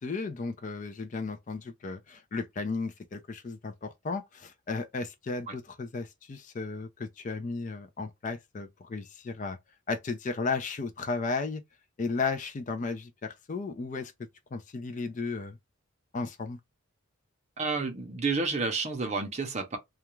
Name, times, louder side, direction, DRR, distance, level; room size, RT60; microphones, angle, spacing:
voice 1, 0.0-9.6 9.9-11.6 12.0-14.1 14.5-15.6 16.1-16.6, left 4 dB, 35° left, 0.3 m, -34 dB
voice 2, 17.6-19.8, right 4 dB, 30° right, 0.6 m, -30 dB
2.3 x 2.2 x 2.9 m
head